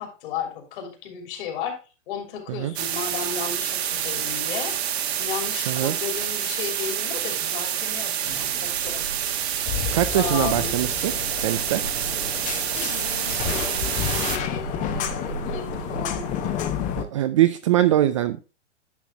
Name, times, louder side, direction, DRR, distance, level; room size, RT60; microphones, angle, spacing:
voice 1, 0.0-1.8 2.1-4.7 5.2-9.1 10.1-10.7 12.7-16.3, left 7 dB, 45° left, 4 dB, 3.0 m, -34 dB
sound 1, 2.8-14.4, right 10 dB, 60° right, 1.3 m, -28 dB
sound 2, 8.2-16.5, right 5 dB, 90° right, 1.6 m, -38 dB
sound 3, 9.7-17.0, left 9 dB, 20° left, 0.9 m, -30 dB
voice 2, 9.9-11.1 11.4-11.8 17.0-18.4, right 13 dB, 30° right, 10 dB, 0.4 m, -22 dB
10.5 x 5.8 x 3.3 m, 0.30 s
hypercardioid pair, 130°, 36 cm